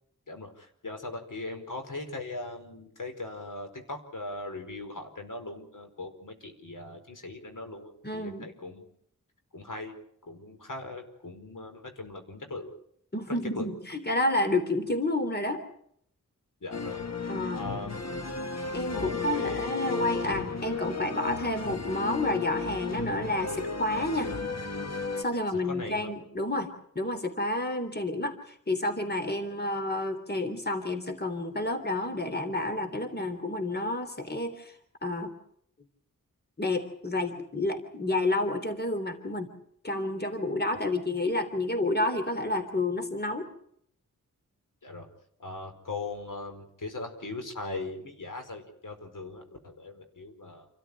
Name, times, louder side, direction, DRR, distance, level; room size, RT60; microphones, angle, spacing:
voice 1, 0.3-8.8 9.5-9.9 10.3-12.7 13.5-13.7 16.6-17.0 17.5-18.0 18.9-19.7 25.3-26.1 29.6-29.7 40.7-40.9 44.8-45.1 45.4-50.7, left 2 dB, 75° left, 5 dB, 4.8 m, -39 dB
voice 2, 8.0-8.5 13.1-15.6 17.3-17.6 18.7-24.3 25.2-34.7 35.0-35.3 36.6-39.5 39.8-43.5, left 2 dB, 30° left, 7 dB, 3.2 m, -30 dB
sound 1, 16.7-25.2, left 4 dB, 55° left, 1.9 m, -34 dB
28.5 x 14.0 x 9.7 m, 0.71 s
wide cardioid pair, 60°, 32 cm